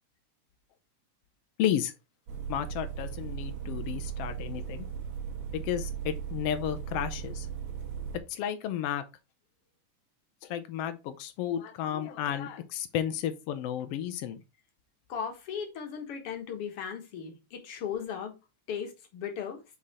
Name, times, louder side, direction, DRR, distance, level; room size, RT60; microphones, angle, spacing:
voice 1, 1.6-1.9 2.5-4.9 5.5-7.5 8.3-9.0 10.4-14.4, left 10 dB, 85° left, 1.3 m, -32 dB
sound 1, 2.3-8.2, right 7 dB, 55° right, 2.0 m, -37 dB
voice 2, 15.1-18.3 18.7-19.6, left 7 dB, 55° left, 2.0 m, -37 dB
5.7 x 5.0 x 4.2 m
omnidirectional pair, 3.7 m